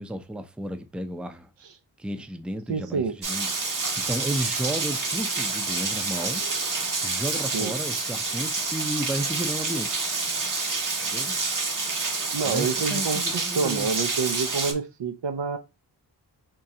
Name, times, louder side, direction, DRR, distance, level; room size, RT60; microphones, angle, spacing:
voice 1, 0.0-1.5 2.0-3.5 4.0-6.4 7.0-10.1 11.0-11.4 12.4-13.9, right 1 dB, ahead, 0.4 m, -33 dB
voice 2, 2.7-3.1 7.5-7.7 12.3-15.6, right 5 dB, 85° right, 0.6 m, -28 dB
Rain, 3.2-14.7, right 3 dB, 45° right, 0.8 m, -28 dB
3.7 x 3.1 x 2.7 m
wide cardioid pair, 60°, 43 cm